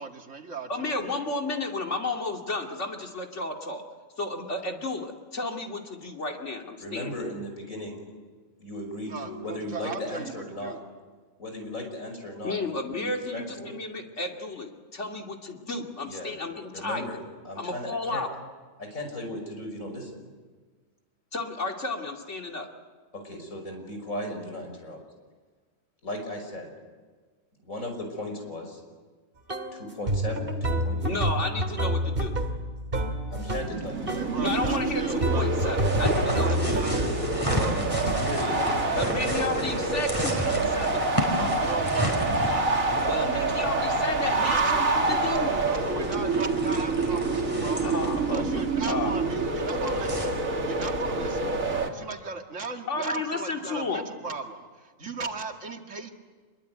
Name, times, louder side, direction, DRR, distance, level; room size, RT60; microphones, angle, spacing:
voice 1, 0.0-1.6 9.0-10.8 34.1-35.8 36.4-39.5 40.2-40.6 41.3-43.8 44.1-47.8 48.3-51.6 51.9-56.1, right 3 dB, 65° right, 4 dB, 2.3 m, -37 dB
voice 2, 0.7-3.8 4.2-6.6 6.9-7.1 12.4-17.2 17.6-18.3 21.3-22.7 31.0-32.4 34.4-37.0 39.0-41.1 43.1-45.6 47.8-49.3 52.9-54.0, left 3 dB, 60° left, 3 dB, 2.8 m, -32 dB
voice 3, 6.8-8.0 8.6-10.8 11.4-12.6 13.0-13.7 16.0-16.4 16.7-17.2 17.4-18.2 18.8-20.1 23.1-25.0 26.0-26.7 27.6-28.8 29.7-31.2 33.3-34.4 37.9-40.1, left 1 dB, 85° left, 4 dB, 6.1 m, -36 dB
sound 1, 29.5-29.8 30.1-33.8 34.1-34.8 35.2-38.4, right 1 dB, 45° right, 2.3 m, -29 dB
sound 2, 33.5-51.9, right 3 dB, 85° right, 2.6 m, -27 dB
sound 3, 35.8-50.3, equal, 15° left, 5.2 m, -33 dB
26.0 x 22.5 x 9.4 m, 1.5 s
omnidirectional pair, 1.4 m